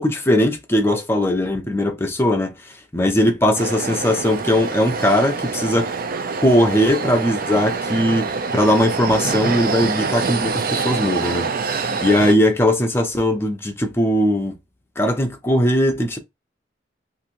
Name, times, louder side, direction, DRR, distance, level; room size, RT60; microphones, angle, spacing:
voice 1, 0.0-5.9 6.4-8.3 8.5-11.5 11.8-14.6 15.0-16.2, left 1 dB, 15° left, 0.6 m, -19 dB
sound 1, 3.6-12.3, right 4 dB, 50° right, 0.5 m, -25 dB
2.9 x 2.6 x 2.5 m
head